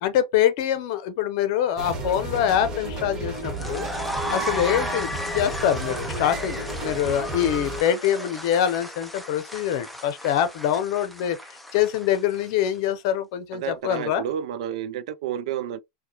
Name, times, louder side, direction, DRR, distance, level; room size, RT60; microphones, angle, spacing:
voice 1, 0.0-3.9 4.3-11.4 11.7-14.2, left 10 dB, 50° left, 0.8 m, -24 dB
sound 1, 1.8-7.8, right 2 dB, 20° right, 1.4 m, -33 dB
sound 2, 3.3-12.7, equal, ahead, 0.6 m, -35 dB
voice 2, 13.5-15.8, right 10 dB, 70° right, 0.5 m, -31 dB
4.6 x 2.3 x 2.9 m
supercardioid pair, 155°, 4 cm